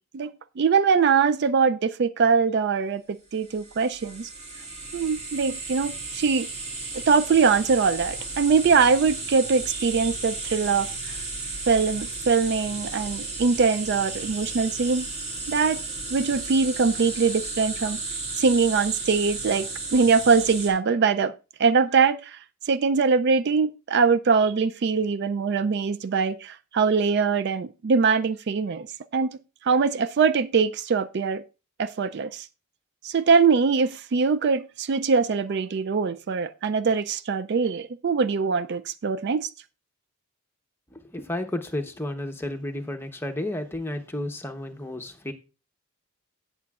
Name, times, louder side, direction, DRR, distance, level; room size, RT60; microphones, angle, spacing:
voice 1, 0.1-4.3 4.9-6.5 6.9-11.2 11.7-15.1 15.5-15.8 16.1-18.0 18.4-21.3 21.6-22.4 22.7-28.9 29.1-31.4 31.8-32.5 33.0-39.5, right 5 dB, 50° right, 0.3 m, -22 dB
sound 1, 3.4-20.7, right 3 dB, 30° right, 2.5 m, -34 dB
voice 2, 40.9-45.3, left 1 dB, 10° left, 0.8 m, -32 dB
17.0 x 6.8 x 2.4 m
head